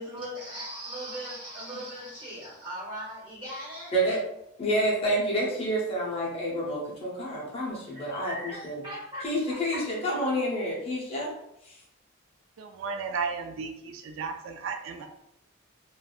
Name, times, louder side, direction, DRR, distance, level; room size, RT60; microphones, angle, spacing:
voice 1, 0.0-3.9 7.9-9.8, equal, 25° right, -8 dB, 1.5 m, -39 dB
voice 2, 4.6-8.8 9.2-11.3 11.7-11.8, right 1 dB, 30° left, -4 dB, 0.7 m, -28 dB
voice 3, 12.6-15.1, right 5 dB, 80° right, 4 dB, 0.3 m, -34 dB
3.3 x 2.2 x 2.4 m, 0.79 s
head